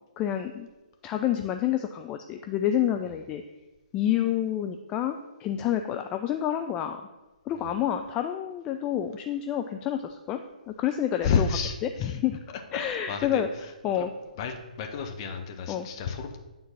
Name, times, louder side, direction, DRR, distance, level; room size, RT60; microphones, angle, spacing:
voice 1, 0.2-0.7 1.0-3.4 3.9-7.0 7.5-10.4 10.7-11.5 11.8-12.4 12.7-13.5 13.8-14.1 15.7-15.9, left 10 dB, 15° left, 5 dB, 0.3 m, -28 dB
voice 2, 11.2-12.2 12.5-13.4 13.9-14.1 14.4-16.4, left 6 dB, 30° left, 5 dB, 0.9 m, -31 dB
9.1 x 3.8 x 5.7 m, 1.1 s
figure-of-eight pair, 130°, 5 cm